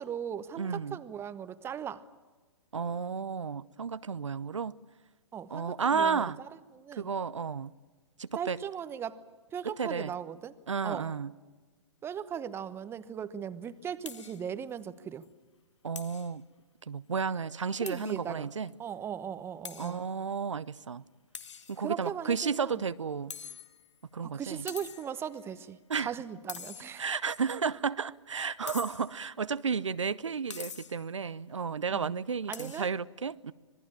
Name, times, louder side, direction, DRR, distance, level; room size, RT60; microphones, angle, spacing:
voice 1, 0.0-2.0 5.3-6.3 6.7-7.1 8.4-9.2 9.5-10.6 10.8-11.1 12.0-15.2 17.8-18.5 18.8-20.0 21.8-22.8 24.2-27.1 31.9-32.1 32.5-32.9, right 8 dB, 15° right, 1.0 m, -38 dB
voice 2, 0.6-1.0 2.7-4.7 5.5-6.4 7.0-7.7 8.2-8.6 9.8-10.1 10.7-11.3 15.8-16.4 16.9-18.7 19.8-21.0 21.7-23.3 24.1-24.6 25.9-26.1 27.0-33.5, right 6 dB, 80° right, 0.7 m, -32 dB
sound 1, 14.1-14.4 14.8-14.9 15.2-15.3 16.0-16.3 17.9-18.2 18.7-18.8 19.6-20.0 21.3-22.1 23.3-24.0 24.7-25.2 26.5-27.2 28.7-29.2 30.5-31.1 32.5-32.9, left 6 dB, 70° left, 1.8 m, -44 dB
25.5 x 19.5 x 8.9 m
figure-of-eight pair, 120°, 16 cm